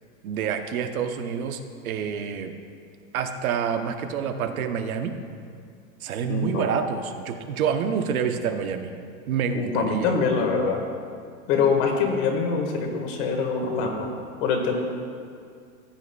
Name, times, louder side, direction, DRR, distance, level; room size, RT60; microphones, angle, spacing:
voice 1, 0.2-1.6 1.8-2.5 3.1-5.1 6.0-8.9 9.3-10.1, right 7 dB, 80° right, 7 dB, 0.9 m, -27 dB
voice 2, 6.3-6.8 9.5-10.8 11.5-14.1 14.4-14.7, left 5 dB, 55° left, 2 dB, 1.7 m, -24 dB
14.0 x 8.3 x 2.3 m, 2.2 s
hypercardioid pair, 120°, 42 cm